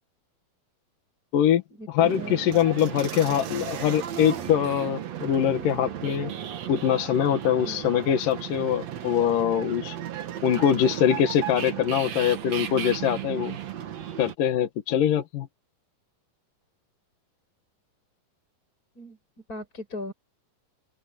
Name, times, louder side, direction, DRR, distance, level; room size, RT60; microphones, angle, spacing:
voice 1, 1.9-6.3 6.7-10.0 10.4-13.6 14.2-15.5, left 9 dB, 75° left, 3.1 m, -23 dB
sound 1, 2.0-14.3, right 10 dB, 55° right, 2.4 m, -35 dB
voice 2, 7.6-7.9 19.0-19.2 19.5-20.1, left 1 dB, 25° left, 6.6 m, -38 dB
open air
omnidirectional pair, 4.0 m